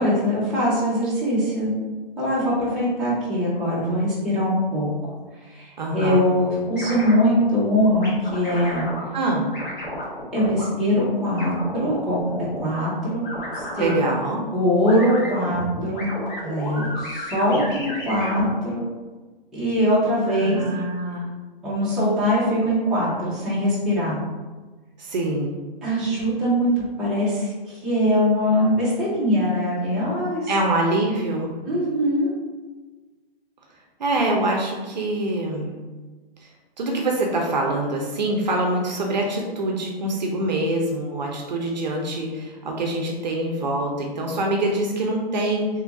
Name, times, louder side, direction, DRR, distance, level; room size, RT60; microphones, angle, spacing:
voice 1, 0.0-1.8 2.2-4.9 5.5-8.9 10.3-12.2 12.6-13.2 13.5-13.9 14.5-16.1 16.4-18.8 19.5-20.6 21.6-24.2 25.8-26.7 27.0-30.5 31.6-32.3, equal, ahead, -11 dB, 0.7 m, -22 dB
voice 2, 5.8-6.3 9.1-9.5 13.8-14.4 20.3-21.3 25.0-25.5 30.5-31.5 34.0-35.8 36.4-36.5 36.8-45.7, right 1 dB, 45° right, 0 dB, 0.6 m, -25 dB
sound 1, 6.0-6.1 6.8-7.3 7.8-9.0 9.5-10.7 11.4-12.6 13.2-14.0 14.7-18.5, equal, 55° left, 1.5 m, -33 dB
3.0 x 2.4 x 3.6 m, 1.3 s
hypercardioid pair, 155°, 30 cm